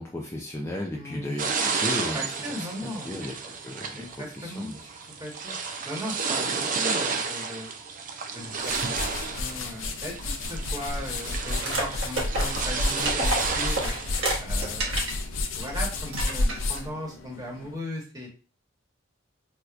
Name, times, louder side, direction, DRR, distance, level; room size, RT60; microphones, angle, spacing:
voice 1, 0.0-4.9, left 1 dB, 15° left, -2 dB, 0.4 m, -35 dB
voice 2, 0.9-1.4 2.1-3.2 3.9-4.7 5.0-5.6 5.8-7.7 8.3-18.3, equal, 20° right, -2 dB, 1.2 m, -38 dB
sound 1, 1.4-14.4, right 5 dB, 40° right, 0.4 m, -32 dB
sound 2, 8.4-17.7, left 2 dB, 70° left, 0.5 m, -31 dB
sound 3, 11.6-15.2 15.6-15.7 16.1-16.9, right 1 dB, 70° right, 1.2 m, -30 dB
4.4 x 2.2 x 2.5 m, 0.36 s
head